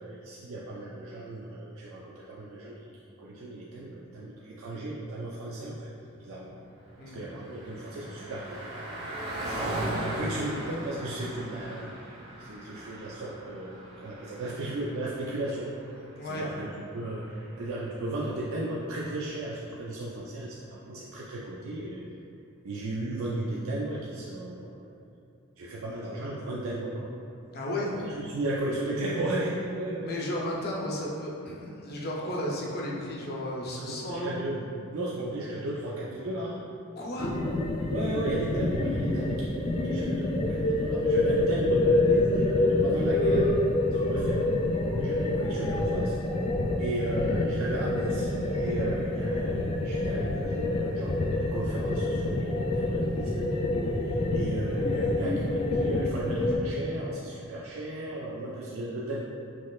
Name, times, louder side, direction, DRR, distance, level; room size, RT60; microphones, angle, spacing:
voice 1, 0.0-2.8 3.2-5.9 6.2-6.6 7.1-8.7 9.4-11.9 12.4-15.7 16.2-16.7 16.9-22.0 22.6-24.8 25.6-27.1 28.0-30.1 32.2-32.3 33.7-34.6 34.9-36.6 37.9-43.5 43.9-44.4 45.0-46.2 46.8-53.7 54.0-59.2, right 1 dB, 65° right, -5 dB, 0.4 m, -35 dB
Car passing by, 6.6-18.3, right 1 dB, 25° right, 1.0 m, -39 dB
voice 2, 16.2-16.5 27.5-27.9 30.0-34.4 37.0-37.3 53.0-53.2, left 1 dB, 45° left, -3 dB, 0.7 m, -34 dB
sound 1, 37.2-56.6, left 2 dB, 25° left, 0.3 m, -27 dB
5.9 x 3.1 x 2.4 m, 2.8 s
head